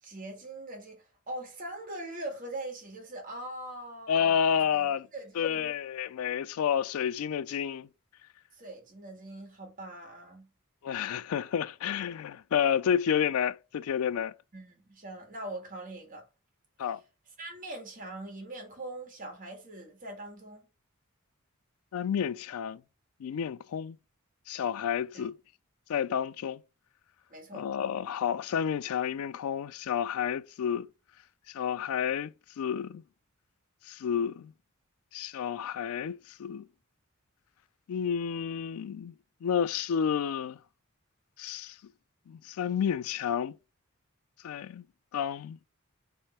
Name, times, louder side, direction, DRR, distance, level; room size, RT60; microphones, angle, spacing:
voice 1, 0.0-4.4 4.7-5.7 8.5-10.5 14.5-16.3 17.4-20.7 25.1-25.3 27.3-27.7, right 1 dB, 40° right, 1.7 m, -42 dB
voice 2, 4.1-5.1 5.4-7.9 10.8-14.3 16.8-17.0 21.9-22.8 23.2-24.0 24.5-25.3 25.9-26.6 27.5-30.9 31.5-33.0 33.9-34.5 35.1-36.6 37.9-39.1 39.4-40.6 41.4-41.8 42.3-43.5 44.4-44.8 45.1-45.6, left 8 dB, 80° left, 0.3 m, -30 dB
3.5 x 3.4 x 4.3 m
head